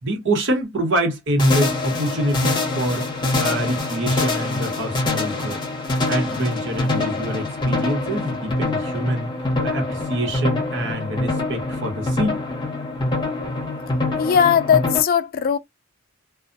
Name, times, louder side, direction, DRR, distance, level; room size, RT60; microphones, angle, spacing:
voice 1, 0.0-5.6 6.1-9.3 9.6-12.4, right 1 dB, 65° right, 1.1 m, -25 dB
sound 1, 1.4-15.0, left 2 dB, 25° left, 0.7 m, -25 dB
voice 2, 14.2-15.6, left 8 dB, 45° left, 0.3 m, -18 dB
2.3 x 2.1 x 2.5 m
head